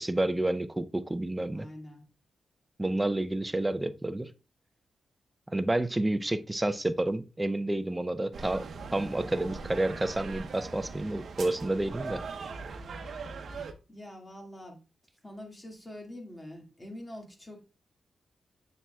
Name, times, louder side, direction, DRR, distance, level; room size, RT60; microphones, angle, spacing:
voice 1, 0.0-1.7 2.8-4.3 5.5-8.7 8.9-12.2, right 1 dB, 15° right, 0.5 m, -29 dB
voice 2, 1.5-2.0 13.9-14.8 15.2-17.6, left 1 dB, 20° left, 1.9 m, -45 dB
sound 1, 8.3-13.7, right 4 dB, 65° right, 0.8 m, -40 dB
7.4 x 6.7 x 2.3 m
wide cardioid pair, 110°, 0 cm